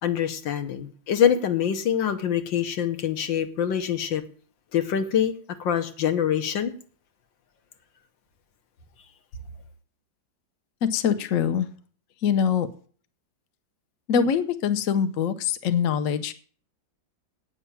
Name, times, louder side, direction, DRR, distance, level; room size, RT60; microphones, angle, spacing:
voice 1, 0.0-4.2 4.7-5.3 5.6-6.7, left 9 dB, 75° left, 8 dB, 1.8 m, -24 dB
voice 2, 10.8-11.7 12.2-12.7 14.1-16.3, left 7 dB, 50° left, 9 dB, 1.1 m, -23 dB
9.0 x 7.0 x 8.4 m, 0.44 s
omnidirectional pair, 2.1 m